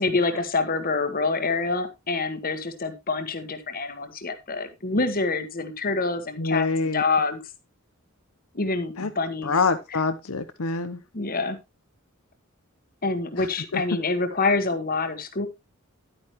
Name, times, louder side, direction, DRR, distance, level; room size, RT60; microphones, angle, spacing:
voice 1, 0.0-6.7 6.9-7.4 8.5-9.6 11.1-11.6 13.0-15.5, left 3 dB, 45° left, 9 dB, 1.4 m, -26 dB
voice 2, 6.4-7.0 9.0-9.1 9.4-11.0 13.4-13.5 13.7-13.8, left 4 dB, 85° left, 10 dB, 0.9 m, -25 dB
11.0 x 9.1 x 3.0 m, 0.23 s
head